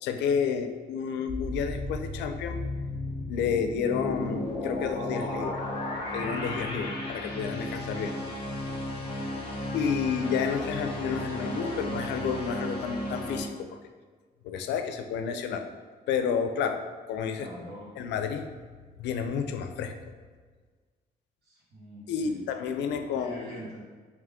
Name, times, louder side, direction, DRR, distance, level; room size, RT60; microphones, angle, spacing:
voice 1, 0.0-2.6 3.3-5.6 6.1-8.2 9.7-13.8 14.4-15.7 16.1-17.5 18.0-18.5 19.0-19.9 22.1-23.6, left 6 dB, 85° left, 7 dB, 0.4 m, -30 dB
sound 1, 1.3-13.4, left 1 dB, 30° left, 0.7 m, -34 dB
voice 2, 11.0-11.9 17.3-17.9 21.4-22.4 23.1-23.8, right 1 dB, 65° right, -5 dB, 1.4 m, -44 dB
3.5 x 2.9 x 3.5 m, 1.5 s
cardioid pair, 165°, 18 cm